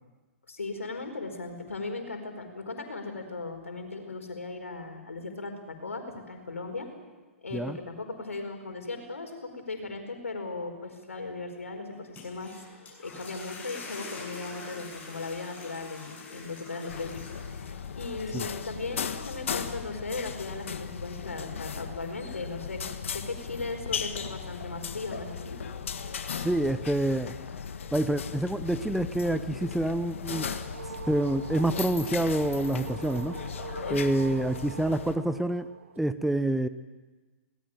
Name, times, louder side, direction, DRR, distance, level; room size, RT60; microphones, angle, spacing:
voice 1, 0.5-6.9 7.4-12.5 13.0-17.2 17.6-25.6, left 3 dB, 85° left, 5 dB, 4.6 m, -37 dB
sound 1, 11.9-18.0, left 4 dB, 20° left, 7.4 m, -45 dB
sound 2, 16.9-35.2, left 6 dB, 65° left, 1.6 m, -37 dB
voice 2, 26.4-27.3 27.9-30.5 31.1-33.4 33.9-35.7 36.0-36.7, right 1 dB, ahead, 11 dB, 0.8 m, -27 dB
sound 3, 30.1-36.0, right 7 dB, 65° right, 1.0 m, -43 dB
21.0 x 18.5 x 9.0 m, 1.3 s
figure-of-eight pair, 120°, 7 cm